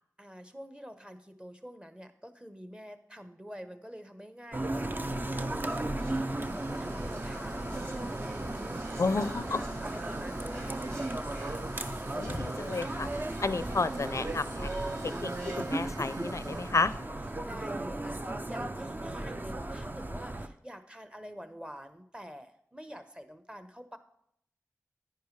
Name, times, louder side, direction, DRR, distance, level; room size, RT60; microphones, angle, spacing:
voice 1, 0.2-11.1 16.4-17.1 17.4-24.0, equal, 15° right, 9 dB, 1.0 m, -47 dB
sound 1, 4.5-20.5, right 2 dB, 35° right, 0.6 m, -35 dB
Whispering, 5.2-16.3 16.6-16.7 16.9-17.3, right 1 dB, 60° right, 4.7 m, -48 dB
sound 2, 6.4-16.7, right 1 dB, 90° right, 1.2 m, -55 dB
voice 2, 9.0-9.6 12.1-13.1 13.4-14.7 15.2-16.9, left 3 dB, 60° left, 15 dB, 0.4 m, -31 dB
10.0 x 9.9 x 3.2 m, 0.71 s
wide cardioid pair, 45°, 6 cm